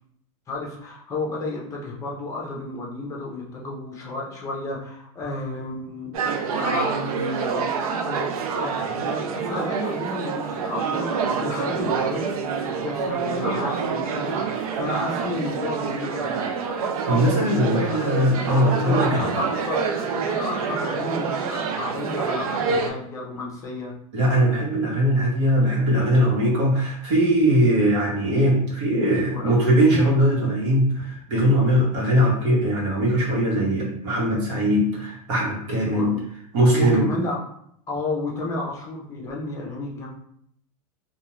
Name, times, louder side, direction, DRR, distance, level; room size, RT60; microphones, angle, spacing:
voice 1, 0.5-6.2 6.6-7.7 8.0-16.4 17.7-18.2 18.8-23.9 29.1-29.7 35.8-36.2 36.7-37.4 37.9-40.1, left 2 dB, 15° left, -2 dB, 0.6 m, -32 dB
sound 1, 6.1-22.9, right 5 dB, 85° right, 0.5 m, -27 dB
voice 2, 17.1-19.3 24.1-36.2 36.5-37.1, equal, 55° right, -3 dB, 1.1 m, -20 dB
2.5 x 2.2 x 3.0 m, 0.70 s
supercardioid pair, 155°, 18 cm